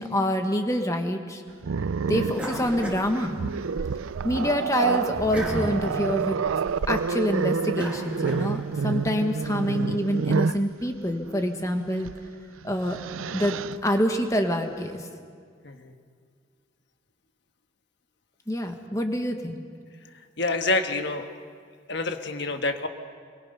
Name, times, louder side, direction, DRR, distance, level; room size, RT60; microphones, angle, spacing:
voice 1, 0.0-1.4 2.0-3.4 4.2-6.4 6.9-12.1 12.6-13.0 13.3-13.5 13.8-15.0 18.5-19.6, equal, 15° left, 4 dB, 1.4 m, -26 dB
Growling, 1.6-10.7 12.0-12.2 12.6-13.8, right 5 dB, 85° right, 0.5 m, -28 dB
sound 1, 2.3-3.9 4.3-8.9, equal, 5° right, 2.6 m, -36 dB
voice 2, 15.6-15.9 20.4-21.3 21.9-22.9, left 2 dB, 55° left, 6 dB, 1.4 m, -27 dB
25.5 x 22.5 x 5.6 m, 2.1 s
head